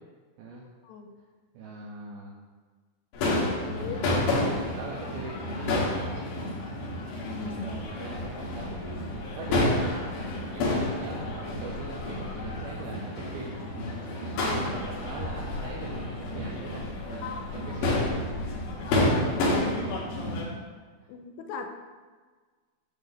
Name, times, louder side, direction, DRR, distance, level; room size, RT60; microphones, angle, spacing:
voice 1, 1.5-2.3 3.9-6.3 6.6-7.0 7.3-9.1 9.4-13.8 14.1-18.3 18.7-18.8 21.0-21.1, right 3 dB, 85° right, -4 dB, 2.0 m, -41 dB
Crowd / Fireworks, 3.1-20.4, left 1 dB, 70° left, 2.8 m, -30 dB
voice 2, 3.7-4.4 7.1-7.7 17.2-17.8 18.9-19.6 21.1-21.7, left 6 dB, 90° left, 5 dB, 2.7 m, -39 dB
8.1 x 6.8 x 2.6 m, 1.4 s
omnidirectional pair, 4.7 m